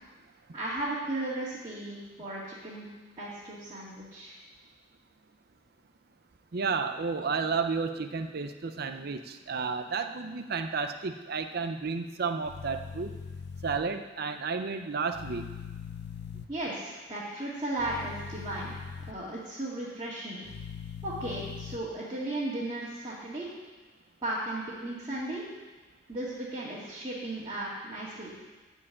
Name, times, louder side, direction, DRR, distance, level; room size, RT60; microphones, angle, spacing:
voice 1, 0.5-2.9 3.2-4.3 16.5-18.8 19.1-20.4 21.0-23.5 24.2-25.4 26.1-28.3, right 1 dB, 25° right, -10 dB, 2.3 m, -35 dB
voice 2, 6.5-13.1 13.6-15.5, right 5 dB, 55° right, 8 dB, 0.6 m, -32 dB
sound 1, 12.4-13.8 15.1-16.4 17.8-19.1 20.4-21.8, left 6 dB, 65° left, 0.6 m, -41 dB
14.0 x 4.7 x 8.5 m, 1.2 s
head